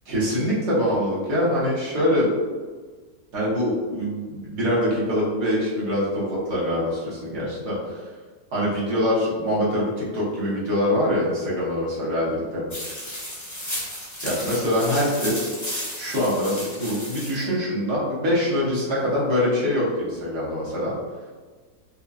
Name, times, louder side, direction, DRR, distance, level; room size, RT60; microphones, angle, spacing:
voice 1, 0.1-2.3 3.3-8.1 8.5-12.9 14.2-15.5 15.9-20.9, left 1 dB, 90° right, -7 dB, 1.8 m, -24 dB
sound 1, 12.7-17.4, equal, 25° left, 0.4 m, -33 dB
5.2 x 2.2 x 2.4 m, 1.4 s
omnidirectional pair, 1.7 m